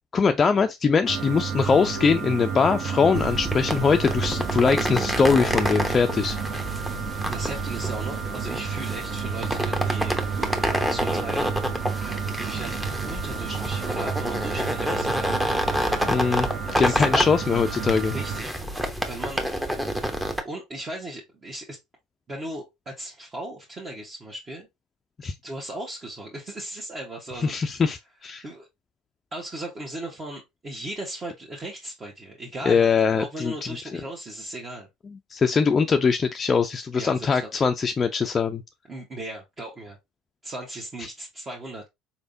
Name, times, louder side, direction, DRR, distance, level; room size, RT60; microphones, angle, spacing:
voice 1, 0.1-6.4 16.0-16.5 16.8-18.1 25.2-25.3 27.4-28.4 32.6-33.5 33.9-34.0 35.3-38.6, left 5 dB, 30° left, 0.4 m, -22 dB
sound 1, 1.1-18.4, right 6 dB, 60° right, 1.0 m, -31 dB
sound 2, 3.1-20.4, equal, 5° right, 0.9 m, -28 dB
voice 2, 7.3-10.2 10.9-11.5 12.0-12.2 12.5-12.8 13.1-15.3 15.6-16.0 16.8-17.3 18.1-18.6 19.1-19.8 20.4-21.8 22.3-24.7 25.4-27.8 28.4-28.7 29.3-34.9 36.9-37.5 38.9-40.0 40.4-41.8, right 1 dB, 30° right, 1.3 m, -37 dB
4.3 x 3.3 x 2.7 m
hypercardioid pair, 75°, 0 cm